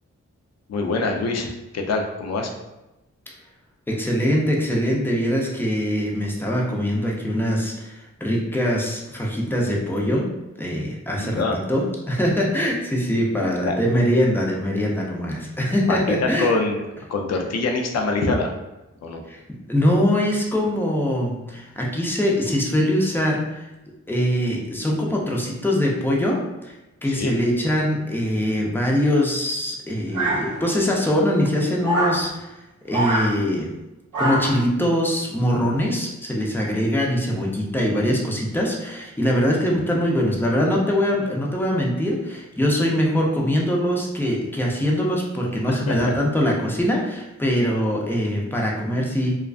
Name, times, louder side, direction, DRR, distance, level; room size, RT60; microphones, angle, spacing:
voice 1, 0.7-2.5 11.1-11.6 13.6-13.7 15.9-16.8 17.1-18.5 19.0-19.2 27.0-27.4 39.8-40.0 45.7-46.1, left 3 dB, 60° left, 3 dB, 0.4 m, -25 dB
voice 2, 3.9-10.3 10.6-11.4 11.7-16.5 19.3-23.7 24.1-26.7 27.0-32.6 32.8-33.7 34.2-49.3, equal, 5° left, -2 dB, 0.5 m, -22 dB
sound 1, 30.1-30.9 31.8-32.2 32.9-33.3 34.1-34.6, right 1 dB, 80° right, 0.6 m, -24 dB
2.3 x 2.3 x 2.3 m, 0.99 s
cardioid pair, 55°, 30 cm